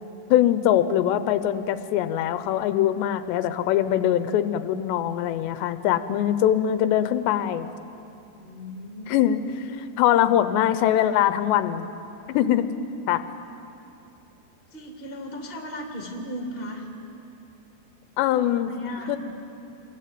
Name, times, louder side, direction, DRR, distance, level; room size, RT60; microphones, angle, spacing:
voice 1, 0.3-7.7 9.1-9.4 9.8-11.9 12.3-12.7 13.1-13.2 18.2-18.7 19.1-19.2, left 11 dB, 85° left, 11 dB, 2.9 m, -22 dB
voice 2, 8.3-9.3 14.7-16.9 18.3-19.2, equal, 15° left, 2 dB, 2.3 m, -37 dB
27.5 x 22.0 x 9.2 m, 2.8 s
omnidirectional pair, 5.0 m